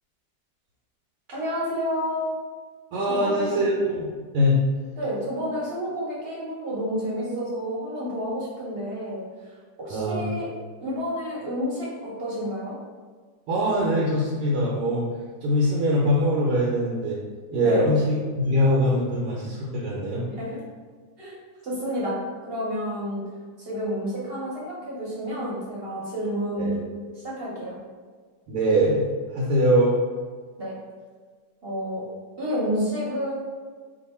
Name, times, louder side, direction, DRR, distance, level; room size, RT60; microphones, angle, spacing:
voice 1, 1.3-2.3 3.1-3.7 5.0-9.2 9.8-10.5 10.8-12.7 17.6-17.9 20.4-20.6 21.2-21.3 21.6-23.2 23.6-26.8 27.2-27.8 30.6-30.7 31.6-32.1 32.4-33.3, equal, 45° right, -6 dB, 0.9 m, -29 dB
voice 2, 2.9-4.1 4.3-4.6 9.9-10.2 13.5-15.1 15.4-17.2 17.5-20.2 26.6-26.7 28.5-29.0 29.3-29.9, equal, 80° right, -4 dB, 1.2 m, -22 dB
2.7 x 2.5 x 4.2 m, 1.5 s
omnidirectional pair, 1.7 m